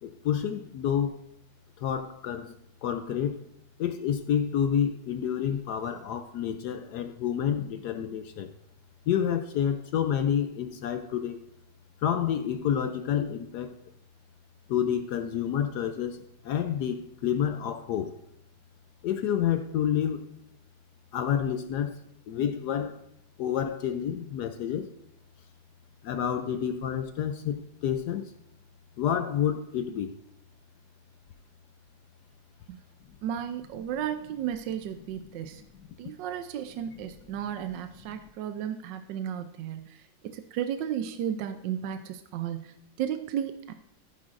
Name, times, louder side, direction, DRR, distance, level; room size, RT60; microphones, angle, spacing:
voice 1, 0.0-1.2 1.8-2.5 2.8-3.5 3.8-8.5 9.1-11.4 12.0-13.7 14.7-18.2 19.0-20.3 21.1-22.0 22.3-23.0 23.4-24.9 26.0-28.3 29.0-30.1, left 9 dB, 70° left, 1.0 m, -29 dB
voice 2, 33.2-35.6 36.0-43.7, right 9 dB, 75° right, 1.2 m, -34 dB
14.5 x 9.8 x 2.5 m
omnidirectional pair, 2.1 m